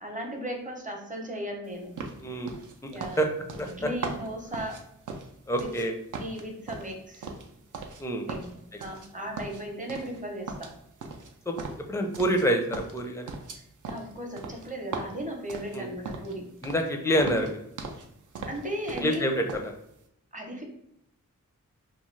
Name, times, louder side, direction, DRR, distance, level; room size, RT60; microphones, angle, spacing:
voice 1, 0.0-1.9 2.9-3.2 3.6-4.8 5.6-5.7 6.2-7.3 8.3-8.5 8.8-10.7 13.8-16.4 18.5-19.3 20.3-20.6, right 1 dB, 25° right, 1 dB, 0.7 m, -36 dB
sound 1, 2.0-5.9 6.1-8.0 8.3-9.1 9.4-10.2 10.5-12.5 12.7-16.4 16.6-16.9 17.2-18.1 18.3-19.2 19.5-19.7, right 4 dB, 65° right, 0.5 m, -39 dB
voice 2, 2.2-2.5 2.8-2.9 3.2-3.3 3.6-3.7 5.5-5.9 8.0-8.3 11.5-11.6 11.9-13.3 15.7-15.9 16.6-17.6 19.0-19.7, equal, 10° left, 4 dB, 0.4 m, -27 dB
2.4 x 2.3 x 3.1 m, 0.77 s
cardioid pair, 40°, 33 cm